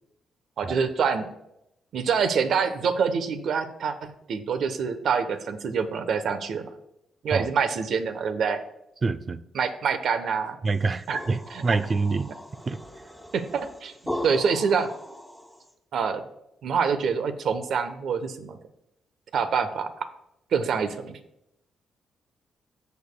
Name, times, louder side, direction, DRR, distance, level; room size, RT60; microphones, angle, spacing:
voice 1, 0.6-1.3 1.9-6.7 7.2-8.6 9.5-10.6 11.1-11.2 11.5-11.8 13.3-13.9 14.2-14.9 15.9-16.2 16.6-18.6 19.3-20.1 20.5-21.2, right 6 dB, 70° right, 0.9 m, -26 dB
voice 2, 9.0-9.4 10.6-11.4 11.6-12.3 12.7-12.8, right 4 dB, 35° right, 0.5 m, -25 dB
sound 1, 10.7-15.7, left 1 dB, 5° right, 1.5 m, -38 dB
15.0 x 6.8 x 2.3 m
cardioid pair, 75°, 0 cm